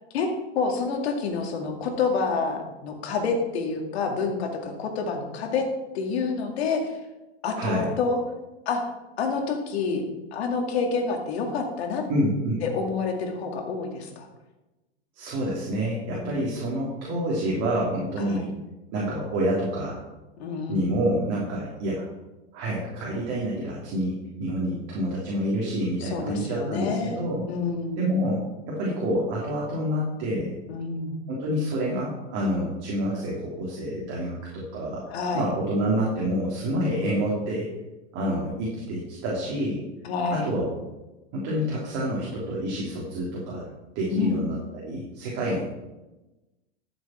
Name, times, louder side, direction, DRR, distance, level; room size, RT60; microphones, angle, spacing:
voice 1, 0.5-5.7 5.9-7.0 7.4-8.2 8.7-8.8 9.2-10.0 10.3-12.0 12.6-14.3 16.1-16.5 18.2-18.5 20.4-20.9 26.0-27.2 27.5-28.0 30.7-31.2 35.1-35.5 36.8-36.9 40.0-40.5 44.1-44.4, left 4 dB, 70° left, 3 dB, 2.3 m, -28 dB
voice 2, 7.5-7.9 12.1-12.6 15.1-18.5 18.9-20.0 20.7-22.1 22.5-27.5 28.0-28.4 28.7-30.5 31.3-35.0 35.3-37.7 38.1-39.8 40.3-40.7 41.3-43.7 43.9-45.6, equal, 45° right, -4 dB, 3.2 m, -28 dB
12.5 x 7.2 x 4.4 m, 1.1 s
hypercardioid pair, 115°, 33 cm